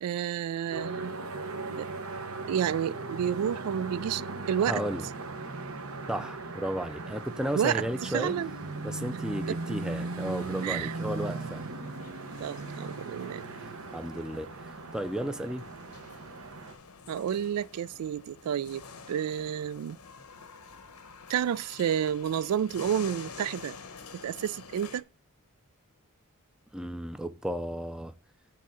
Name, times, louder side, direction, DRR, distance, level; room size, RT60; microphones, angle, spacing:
voice 1, 0.0-1.1 1.8-1.9 2.5-4.2 4.5-4.8 7.5-8.5 9.5-9.6 10.6-10.9 12.4-13.4 17.1-20.0 21.3-23.8 24.2-25.0, right 9 dB, 85° right, 0.3 m, -30 dB
sound 1, 0.7-16.7, right 3 dB, 65° right, 1.0 m, -38 dB
voice 2, 4.6-5.1 6.1-8.3 8.8-11.7 13.5-14.5 14.9-15.6 26.7-28.1, equal, 5° right, 0.4 m, -34 dB
sound 2, 10.3-25.0, left 5 dB, 85° left, 0.9 m, -49 dB
10.0 x 3.6 x 5.6 m
head